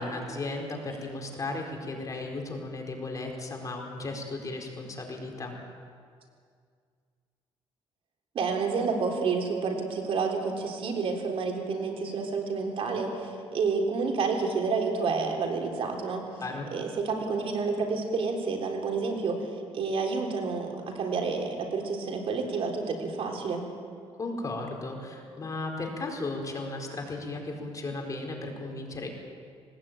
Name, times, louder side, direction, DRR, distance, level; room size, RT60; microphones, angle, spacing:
voice 1, 0.0-5.6 16.4-16.7 24.2-29.1, left 2 dB, 30° left, 1 dB, 4.2 m, -35 dB
voice 2, 8.3-16.2 16.7-23.6, right 4 dB, 60° right, 2 dB, 3.7 m, -29 dB
20.0 x 19.5 x 9.0 m, 2.1 s
cardioid pair, 120°, 11 cm